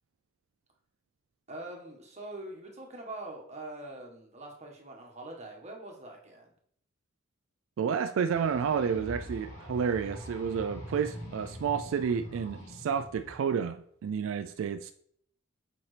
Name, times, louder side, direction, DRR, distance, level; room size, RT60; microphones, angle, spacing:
voice 1, 1.5-6.5, right 2 dB, 35° right, 1.4 m, -43 dB
voice 2, 7.8-14.9, right 6 dB, 75° right, 0.3 m, -30 dB
sound 1, 8.3-13.3, equal, 75° left, 2.6 m, -43 dB
7.0 x 5.2 x 3.3 m
head